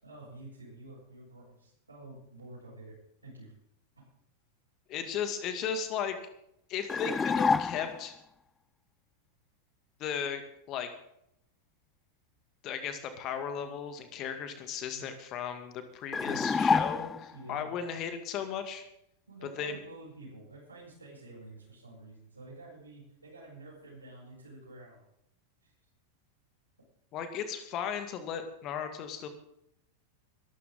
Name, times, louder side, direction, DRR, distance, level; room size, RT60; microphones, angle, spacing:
voice 1, 0.0-2.9 3.2-3.5 14.9-15.1 16.2-16.5 17.3-17.7 19.3-25.0 25.6-25.7, right 2 dB, 80° right, -7 dB, 7.9 m, -49 dB
voice 2, 4.9-6.2 6.7-8.1 10.0-10.4 10.7-10.9 12.6-18.8 19.6-19.8 27.1-29.3, left 7 dB, 35° left, 8 dB, 2.4 m, -36 dB
sound 1, 6.9-8.1 16.1-17.4, left 5 dB, 15° left, 0.5 m, -28 dB
22.5 x 13.0 x 3.9 m, 0.76 s
figure-of-eight pair, 90°, 0 cm